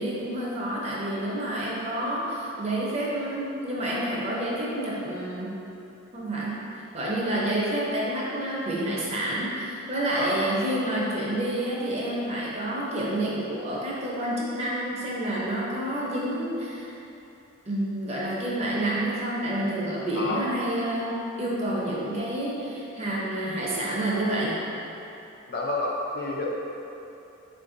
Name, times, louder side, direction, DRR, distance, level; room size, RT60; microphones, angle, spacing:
voice 1, 0.0-5.6 6.1-6.6 6.9-16.9 17.7-24.6, right 1 dB, 30° right, -5 dB, 0.6 m, -29 dB
voice 2, 10.2-10.6 20.2-20.5 25.5-26.5, left 2 dB, 45° left, -3 dB, 0.5 m, -29 dB
4.4 x 2.6 x 3.7 m, 2.9 s
head